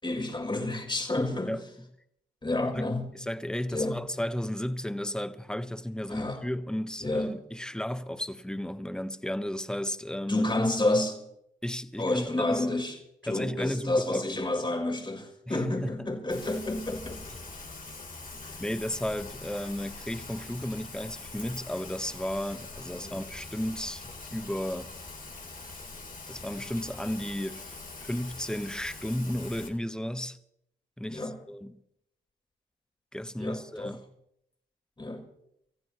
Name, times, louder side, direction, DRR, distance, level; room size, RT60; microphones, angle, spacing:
voice 1, 0.0-1.6 2.4-3.1 3.7-4.0 6.1-6.4 7.0-7.3 10.3-11.2 12.0-13.0 13.2-17.2 18.4-18.6 22.9-23.1 31.1-31.4 33.4-33.9 35.0-35.2, left 2 dB, 25° left, 4.8 m, -29 dB
voice 2, 3.1-10.4 11.6-12.7 13.3-14.5 15.5-16.1 18.6-24.9 26.3-30.4 31.0-31.8 33.1-34.1, left 1 dB, 5° left, 1.2 m, -34 dB
Rain, 16.3-29.7, left 3 dB, 45° left, 3.9 m, -43 dB
27.5 x 15.0 x 3.2 m
hypercardioid pair, 40°, 20 cm